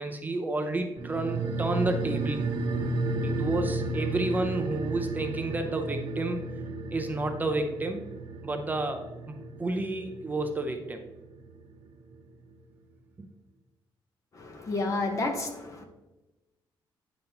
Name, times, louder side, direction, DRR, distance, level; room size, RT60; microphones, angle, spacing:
voice 1, 0.0-2.4 3.2-6.4 6.9-8.0 8.4-11.0 13.2-13.3, right 2 dB, 20° right, 4 dB, 0.6 m, -31 dB
sound 1, 1.0-11.8 12.1-12.2, right 2 dB, 65° right, 1.1 m, -33 dB
voice 2, 14.3-15.8, left 2 dB, 40° left, 4 dB, 1.1 m, -31 dB
9.4 x 5.0 x 2.9 m, 1.0 s
cardioid pair, 135°, 9 cm